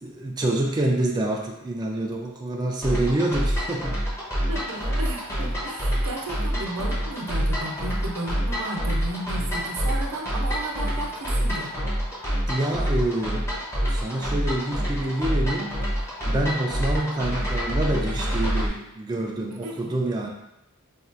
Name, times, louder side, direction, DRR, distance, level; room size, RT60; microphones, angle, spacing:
voice 1, 0.0-4.0 12.5-13.5 13.9-15.8 16.2-20.3, right 1 dB, 20° right, -1 dB, 0.3 m, -27 dB
sound 1, 2.8-18.7, equal, 10° left, 0.7 m, -27 dB
voice 2, 4.5-11.7 19.5-19.9, right 2 dB, 90° right, 0 dB, 0.6 m, -34 dB
4.2 x 2.3 x 2.5 m, 0.88 s
head